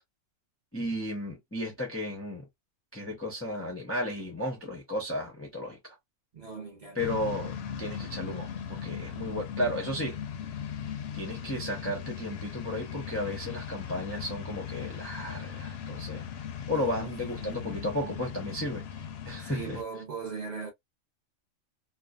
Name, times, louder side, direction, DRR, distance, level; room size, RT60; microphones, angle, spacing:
voice 1, 0.7-2.4 2.9-5.9 6.9-10.2 11.1-16.2 16.7-18.8 19.3-19.8, left 1 dB, 15° left, 0.5 m, -34 dB
voice 2, 6.3-7.0 16.7-17.7 19.4-20.7, right 5 dB, 35° right, 0.8 m, -40 dB
sound 1, 7.0-19.8, left 8 dB, 65° left, 0.7 m, -38 dB
2.5 x 2.3 x 2.2 m
omnidirectional pair, 1.4 m